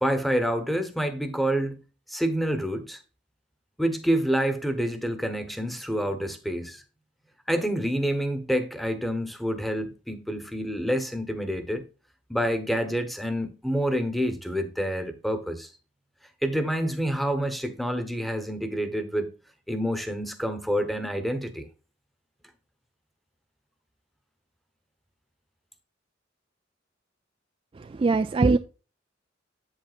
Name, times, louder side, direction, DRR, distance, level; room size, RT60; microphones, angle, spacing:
voice 1, 0.0-1.8 2.1-3.0 3.8-6.8 7.5-11.8 12.3-15.7 16.4-19.3 19.7-21.7, equal, ahead, 1.0 m, -27 dB
voice 2, 27.8-28.6, right 3 dB, 30° right, 0.3 m, -22 dB
8.1 x 7.9 x 2.4 m
head